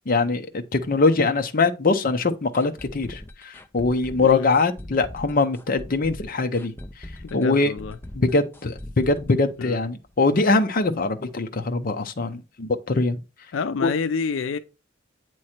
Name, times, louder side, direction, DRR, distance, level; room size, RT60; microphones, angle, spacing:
voice 1, 0.1-6.7 7.3-7.7 8.2-13.2 13.8-13.9, left 3 dB, 45° left, 0.7 m, -22 dB
sound 1, 2.5-10.3 10.5-10.6 11.0-11.1, left 1 dB, 10° left, 0.5 m, -41 dB
voice 2, 4.2-4.5 7.2-8.0 9.6-9.8 13.5-14.6, left 5 dB, 85° left, 0.4 m, -28 dB
8.6 x 3.1 x 4.3 m
head